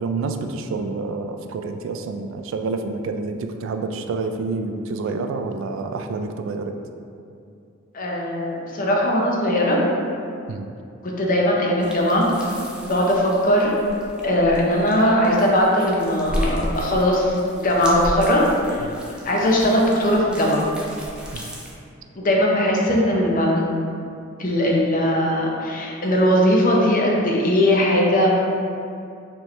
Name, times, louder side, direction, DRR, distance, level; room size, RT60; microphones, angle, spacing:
voice 1, 0.0-6.7 10.5-10.7 18.8-18.9 21.3-21.5, right 3 dB, 70° right, 6 dB, 0.3 m, -28 dB
voice 2, 7.9-9.8 11.0-12.5 12.8-13.7 14.2-18.9 19.2-20.6 22.1-23.7 24.4-28.3, equal, 45° left, -2 dB, 0.6 m, -19 dB
sound 1, 11.8-21.7, equal, 5° right, 0.5 m, -34 dB
4.4 x 3.1 x 3.1 m, 2.5 s
head